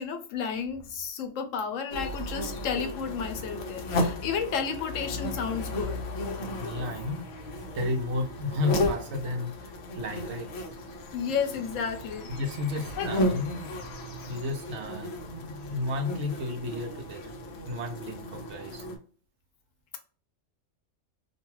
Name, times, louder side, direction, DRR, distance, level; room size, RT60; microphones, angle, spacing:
voice 1, 0.0-6.0 11.1-12.3 13.0-13.1 14.2-14.3, left 6 dB, 80° left, 5 dB, 1.0 m, -32 dB
sound 1, 1.9-19.0, left 1 dB, 60° left, 0.9 m, -34 dB
voice 2, 6.6-7.4 7.7-10.5 12.3-13.7 14.3-17.3 17.7-18.9, left 2 dB, 65° right, 4 dB, 0.9 m, -33 dB
2.6 x 2.3 x 3.0 m, 0.39 s
omnidirectional pair, 1.3 m